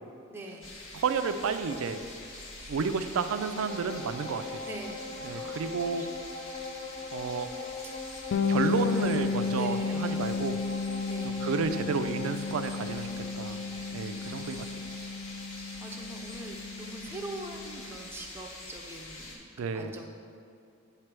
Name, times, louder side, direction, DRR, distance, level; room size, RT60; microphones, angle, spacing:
voice 1, 0.3-0.7 4.6-5.7 6.0-6.1 7.0-7.2 8.7-10.3 11.1-11.5 14.2-14.7 15.8-20.1, right 1 dB, 10° right, -1 dB, 0.4 m, -44 dB
sound 1, 0.6-19.4, left 2 dB, 85° left, 1.5 m, -45 dB
voice 2, 0.9-2.0 2.7-4.6 5.2-6.0 7.1-7.5 8.5-10.6 11.2-13.1 13.4-13.6 13.9-14.7 19.6-19.9, right 5 dB, 80° right, 9 dB, 0.4 m, -31 dB
sound 2, 3.6-17.3 17.7-17.8, left 3 dB, 45° left, 0.9 m, -42 dB
Bass guitar, 8.3-17.9, left 4 dB, 65° left, 0.4 m, -33 dB
8.6 x 3.3 x 6.0 m, 2.5 s
head